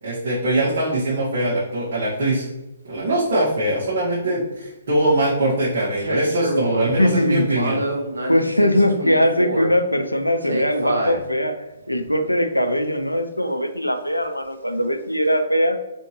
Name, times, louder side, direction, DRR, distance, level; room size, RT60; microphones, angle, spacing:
voice 1, 0.0-2.5 2.8-7.8, right 1 dB, 50° right, -8 dB, 1.5 m, -22 dB
sound 1, 6.0-7.0 7.5-9.7 10.4-11.2 12.0-12.1, right 1 dB, 70° right, 1.0 m, -27 dB
voice 2, 6.8-7.6 8.3-15.8, equal, 90° left, 7 dB, 0.5 m, -21 dB
4.2 x 3.4 x 3.1 m, 1.0 s
figure-of-eight pair, 125°, 0 cm